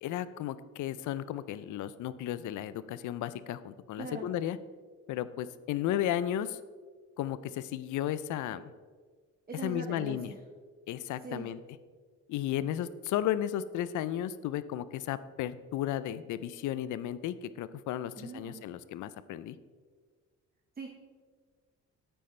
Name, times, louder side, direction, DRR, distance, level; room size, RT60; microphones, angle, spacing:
voice 1, 0.0-4.6 5.1-6.6 7.2-8.7 9.5-10.3 10.9-11.6 12.3-19.6, left 11 dB, 80° left, 15 dB, 0.5 m, -34 dB
voice 2, 4.0-4.3 9.5-10.4 11.2-11.5 18.2-18.6 20.8-20.9, right 4 dB, 30° right, 2 dB, 0.9 m, -41 dB
9.0 x 8.7 x 3.3 m, 1.5 s
cardioid pair, 90°, 30 cm